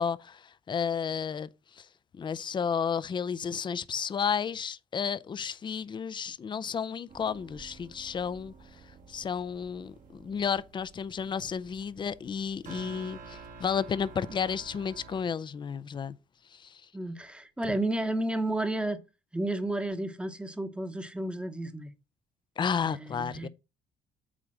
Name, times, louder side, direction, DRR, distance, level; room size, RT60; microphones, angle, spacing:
voice 1, 0.0-1.5 1.8-1.9 2.1-8.5 9.1-16.2 16.5-16.8 22.6-23.5, left 7 dB, 30° left, 0.5 m, -32 dB
sound 1, 7.1-15.2, right 5 dB, 50° right, 1.4 m, -50 dB
voice 2, 16.9-19.0 19.3-21.9 22.8-23.5, right 1 dB, 5° right, 1.0 m, -32 dB
8.7 x 3.3 x 6.3 m
cardioid pair, 110°, 17 cm